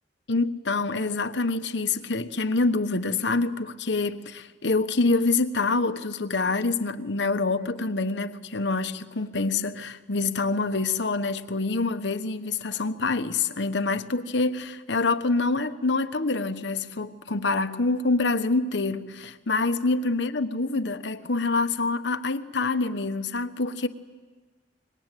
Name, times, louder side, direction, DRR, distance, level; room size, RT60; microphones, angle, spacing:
voice 1, 0.3-23.9, left 3 dB, 70° left, 1.1 m, -26 dB
25.5 x 22.5 x 9.2 m
head